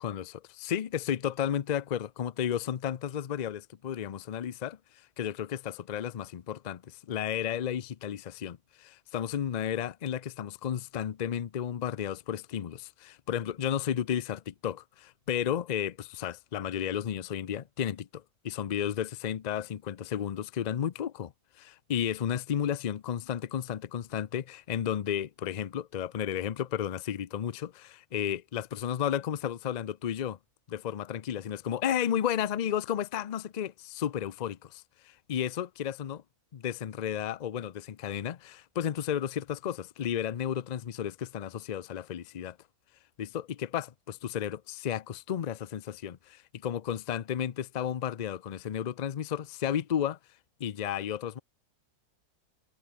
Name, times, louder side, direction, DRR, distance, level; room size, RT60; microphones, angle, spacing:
voice 1, 0.0-30.4 30.7-36.2 36.5-42.6 43.2-50.2 50.6-51.4, left 9 dB, 80° left, 0.3 m, -33 dB
omnidirectional pair, 1.6 m